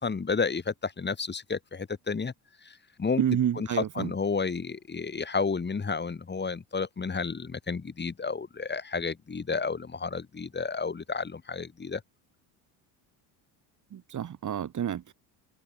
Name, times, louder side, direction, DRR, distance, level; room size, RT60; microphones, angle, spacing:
voice 1, 0.0-2.3 2.6-3.2 3.6-12.0, left 5 dB, 20° left, 3.6 m, -31 dB
voice 2, 3.2-4.1 13.9-15.1, right 9 dB, 40° right, 2.4 m, -29 dB
supercardioid pair, 95°, 46 cm